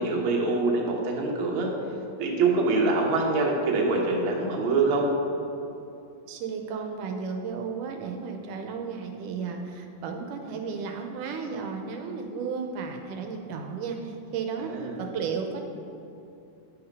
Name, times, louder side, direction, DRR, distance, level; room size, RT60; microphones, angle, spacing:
voice 1, 0.0-1.7 2.2-5.1 14.6-15.0, right 3 dB, 55° right, -1 dB, 1.5 m, -25 dB
voice 2, 6.3-15.6, right 5 dB, 85° right, 4 dB, 2.2 m, -34 dB
9.5 x 5.8 x 5.4 m, 2.7 s
omnidirectional pair, 3.7 m